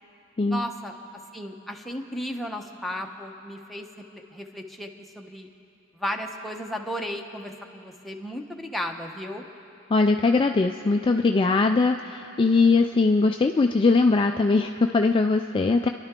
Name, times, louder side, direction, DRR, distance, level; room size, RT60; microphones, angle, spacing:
voice 1, 0.5-0.9 1.3-3.9 4.1-4.9 5.2-5.5 5.9-9.5, equal, ahead, 1 dB, 0.9 m, -34 dB
voice 2, 9.9-15.9, left 3 dB, 25° left, 5 dB, 0.4 m, -21 dB
30.0 x 11.5 x 3.7 m, 2.8 s
head